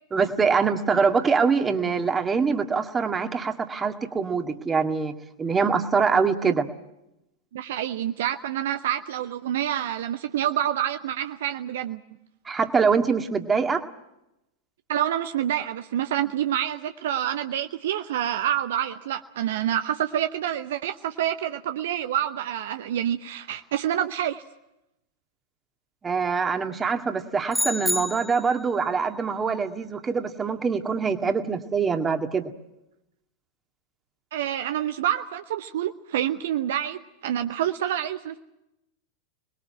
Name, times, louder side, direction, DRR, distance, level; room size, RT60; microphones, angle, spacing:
voice 1, 0.1-6.7 12.5-13.8 26.0-32.5, right 5 dB, 15° right, 6 dB, 2.0 m, -24 dB
voice 2, 7.5-12.0 14.9-24.4 34.3-38.4, right 11 dB, 55° right, 9 dB, 0.8 m, -27 dB
sound 1, 27.5-28.6, left 1 dB, ahead, 0.8 m, -28 dB
26.5 x 21.0 x 7.7 m, 0.88 s
figure-of-eight pair, 90°, 0 cm